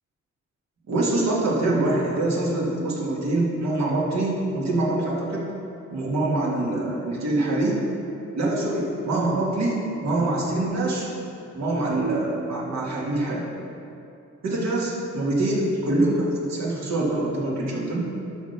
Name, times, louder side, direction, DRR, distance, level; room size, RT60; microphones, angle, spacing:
voice 1, 0.9-5.5 5.9-7.8 8.4-11.1 11.5-13.5 14.4-18.1, right 2 dB, 60° right, -4 dB, 2.2 m, -24 dB
12.0 x 3.9 x 5.7 m, 2.7 s
cardioid pair, 90°, 30 cm